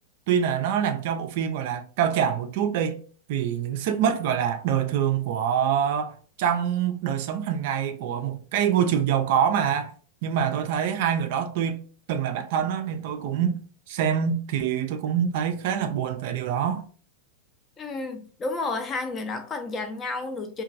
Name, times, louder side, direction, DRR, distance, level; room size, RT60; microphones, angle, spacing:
voice 1, 0.3-3.0 3.3-9.9 10.2-11.8 12.1-13.6 13.9-16.8, right 8 dB, 50° right, 0.3 m, -25 dB
voice 2, 17.8-20.6, left 3 dB, 25° left, 0.4 m, -31 dB
2.9 x 2.2 x 2.5 m
figure-of-eight pair, 90°, 0 cm